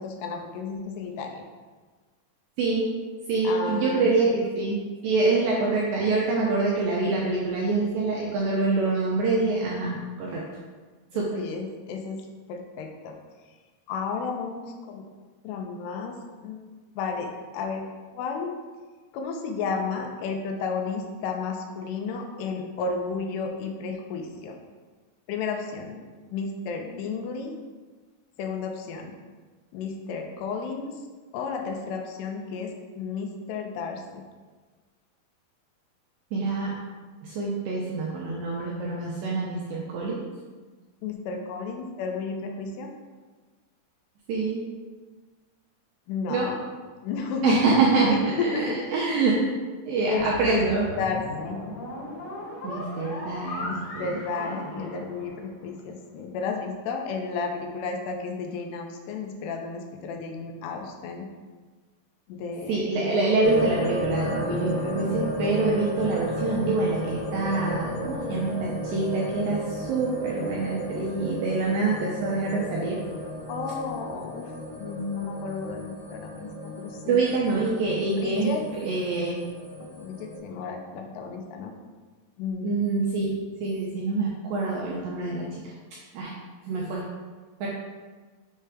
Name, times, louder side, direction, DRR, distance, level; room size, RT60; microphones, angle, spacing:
voice 1, 0.0-1.4 3.4-4.5 11.3-12.2 12.5-13.2 13.9-15.0 15.4-16.2 16.4-16.7 17.0-17.8 18.1-18.5 19.1-24.6 25.3-26.0 26.3-27.5 28.4-29.1 29.7-31.0 31.3-34.2 41.0-42.9 46.1-46.6 47.0-47.6 48.1-48.8 50.1-50.6 51.0-51.6 53.7-61.3 62.3-62.9 73.5-74.5 74.8-77.2 78.1-78.6 79.8-81.7 82.4-82.7, left 5 dB, 90° left, 3 dB, 2.7 m, -32 dB
voice 2, 2.6-2.9 3.3-10.4 11.1-11.4 36.3-36.8 37.2-40.2 44.3-44.6 46.3-46.5 47.4-49.4 49.9-50.9 52.6-54.2 62.7-73.0 77.1-79.4 82.6-85.7 86.1-86.3 86.7-87.0 87.6-87.7, right 3 dB, 80° right, -4 dB, 2.0 m, -25 dB
sound 1, 50.2-55.7, left 1 dB, 60° left, 1.8 m, -37 dB
sound 2, 63.4-80.4, equal, 45° left, 2.3 m, -34 dB
6.7 x 3.3 x 4.8 m, 1.4 s
omnidirectional pair, 4.8 m